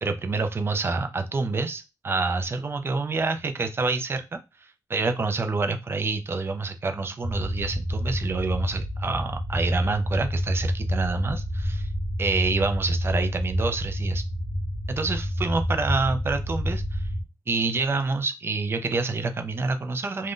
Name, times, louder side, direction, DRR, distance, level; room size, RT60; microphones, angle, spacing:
voice 1, 0.0-11.9 12.2-14.2 14.9-17.1 17.5-20.3, right 3 dB, 35° right, 7 dB, 0.3 m, -27 dB
sound 1, 7.2-17.2, equal, 35° left, 0.6 m, -29 dB
2.4 x 2.1 x 3.6 m, 0.27 s
wide cardioid pair, 145°, 7 cm